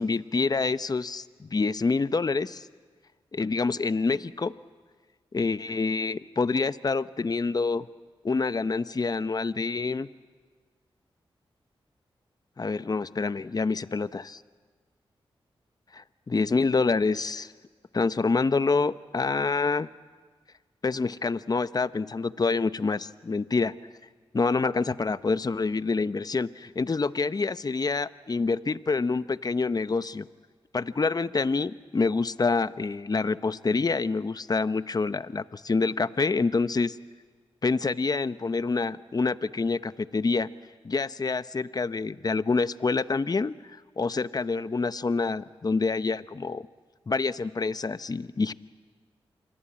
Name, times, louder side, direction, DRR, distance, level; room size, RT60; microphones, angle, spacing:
voice 1, 0.0-2.7 3.3-4.5 5.3-7.9 8.2-10.1 12.6-14.4 15.9-17.5 17.9-19.9 20.8-23.7 24.3-30.3 30.7-37.0 37.6-40.5 40.8-43.5 44.0-46.7 47.1-48.5, left 4 dB, 40° left, 14 dB, 0.8 m, -27 dB
27.0 x 22.5 x 8.8 m, 1.4 s
cardioid pair, 45°, 10 cm